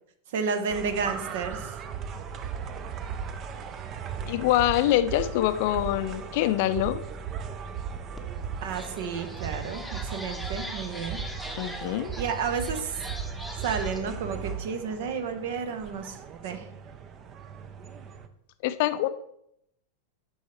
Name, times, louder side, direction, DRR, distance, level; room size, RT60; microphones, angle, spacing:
voice 1, 0.3-1.8 8.6-11.2 11.8-11.9 12.2-13.0 13.6-16.2 16.4-16.7, right 5 dB, 55° right, 8 dB, 1.0 m, -31 dB
sound 1, 0.7-18.3, right 7 dB, 30° right, 0.7 m, -37 dB
voice 2, 4.3-7.0 11.6-12.1 18.6-19.1, left 13 dB, 50° left, 12 dB, 0.5 m, -25 dB
sound 2, 8.1-8.2 8.6-14.0, equal, ahead, 1.0 m, -41 dB
9.4 x 6.3 x 3.1 m, 0.75 s
figure-of-eight pair, 90°, 0 cm